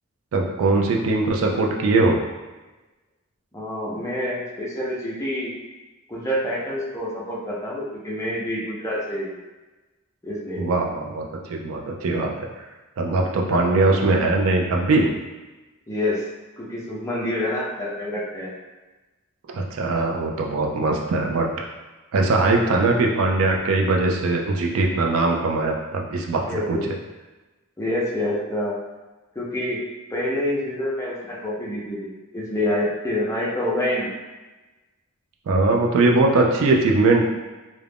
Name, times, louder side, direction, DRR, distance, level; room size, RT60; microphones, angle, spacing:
voice 1, 0.3-2.2 10.6-12.3 13.0-15.1 19.5-21.5 22.1-26.8 35.5-37.2, right 3 dB, 65° right, 1 dB, 0.3 m, -21 dB
voice 2, 3.5-5.5 6.1-9.3 10.2-10.7 13.5-13.7 15.9-16.2 16.6-18.5 26.4-26.9 27.8-28.8 29.3-29.8 30.1-34.1, left 1 dB, 15° left, -6 dB, 0.5 m, -27 dB
2.4 x 2.0 x 3.3 m, 1.2 s
head